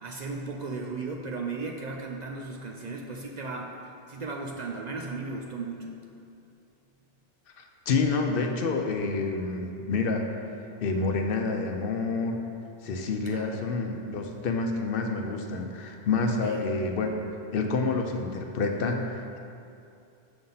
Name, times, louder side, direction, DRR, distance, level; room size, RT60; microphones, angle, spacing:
voice 1, 0.0-3.7 4.1-5.9 13.3-13.6 16.4-16.6, right 3 dB, 55° right, 0 dB, 0.5 m, -36 dB
voice 2, 7.6-10.2 10.8-12.4 12.8-17.2 17.5-19.4, left 3 dB, 65° left, 4 dB, 0.8 m, -28 dB
6.9 x 5.6 x 3.9 m, 2.6 s
omnidirectional pair, 1.1 m